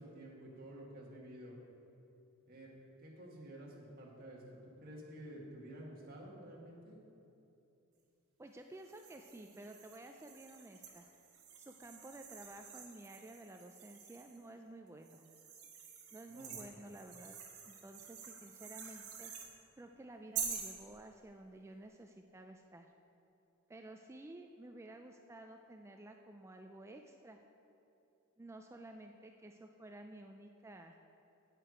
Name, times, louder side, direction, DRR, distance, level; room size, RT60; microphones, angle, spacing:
voice 1, 0.0-1.6 2.5-2.7 3.0-7.0 16.3-16.7, right 1 dB, 45° right, -4 dB, 1.7 m, -51 dB
voice 2, 8.4-11.1 11.6-15.2 16.1-17.4 17.6-19.5 19.8-22.9 23.7-27.4 28.4-31.0, right 1 dB, 10° right, 4 dB, 0.3 m, -53 dB
sound 1, 8.8-14.4 15.0-19.5 20.3-20.8, right 7 dB, 80° right, 1.3 m, -48 dB
9.0 x 8.2 x 4.9 m, 2.8 s
head